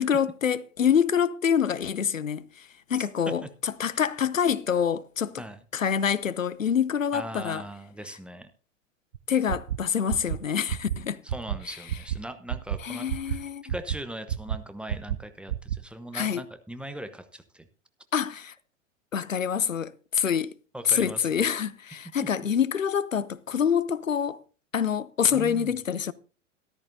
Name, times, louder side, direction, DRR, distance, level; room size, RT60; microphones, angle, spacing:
voice 1, 0.0-5.4 5.7-7.6 9.3-11.2 11.6-11.8 12.8-13.6 16.1-16.4 18.1-18.5 19.1-20.5 20.8-24.4 24.7-26.1, left 8 dB, 90° left, 0.6 m, -26 dB
voice 2, 3.0-3.5 5.4-5.6 7.1-8.5 11.2-17.7 20.2-20.3 20.7-21.4 25.3-25.8, right 1 dB, 5° right, 1.0 m, -40 dB
sound 1, 9.1-9.2 9.5-9.8 10.1-10.4 10.7-11.0 11.3-11.6 11.9-12.2 12.5-12.8 13.1-13.4 13.7-14.0 14.3-14.6 14.9-15.2 15.5-15.8, right 11 dB, 70° right, 0.7 m, -29 dB
13.5 x 13.5 x 2.7 m
figure-of-eight pair, 95°, 38 cm